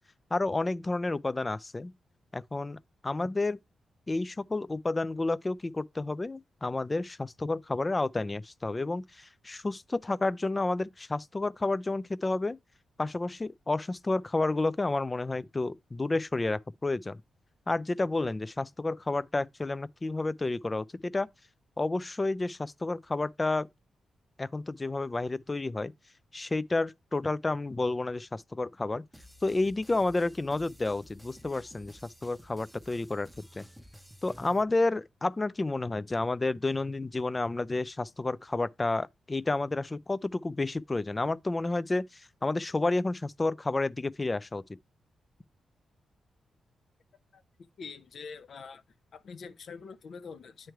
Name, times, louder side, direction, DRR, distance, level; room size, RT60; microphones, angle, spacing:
voice 1, 0.3-1.9 2.3-2.8 3.0-3.6 4.1-12.6 13.0-17.2 17.7-21.3 21.8-23.7 24.4-25.9 26.3-29.0 29.4-33.6 34.2-44.6, left 2 dB, 25° left, 0.3 m, -30 dB
sound 1, 29.1-34.6, equal, ahead, 0.7 m, -53 dB
voice 2, 47.3-48.8 49.1-50.7, left 5 dB, 65° left, 0.6 m, -45 dB
9.1 x 3.2 x 4.6 m
cardioid pair, 75°, 0 cm